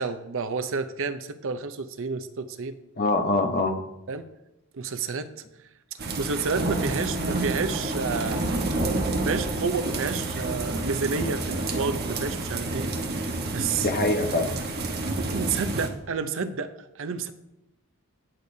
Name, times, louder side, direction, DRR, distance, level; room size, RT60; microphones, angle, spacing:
voice 1, 0.0-2.8 4.1-4.3 4.7-5.3 5.9-8.5 9.2-12.9 13.5-13.9 15.2-16.7 17.0-17.3, right 4 dB, 60° right, 10 dB, 0.6 m, -30 dB
voice 2, 3.0-3.7 13.8-14.5, left 2 dB, 40° left, 5 dB, 1.0 m, -23 dB
Long Rumbling Thunder, 6.0-15.9, right 2 dB, 45° right, 1.2 m, -29 dB
18.5 x 6.7 x 2.7 m, 0.91 s
head